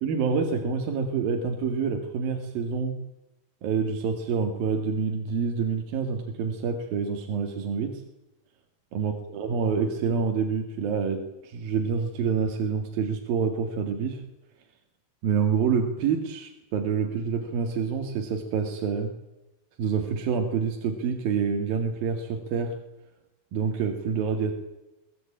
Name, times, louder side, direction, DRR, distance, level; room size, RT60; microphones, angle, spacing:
voice 1, 0.0-3.0 3.6-8.0 9.0-14.2 15.2-19.1 19.8-22.7 23.5-24.5, right 6 dB, 70° right, 4 dB, 3.8 m, -27 dB
23.0 x 19.0 x 8.8 m, 0.98 s
omnidirectional pair, 4.5 m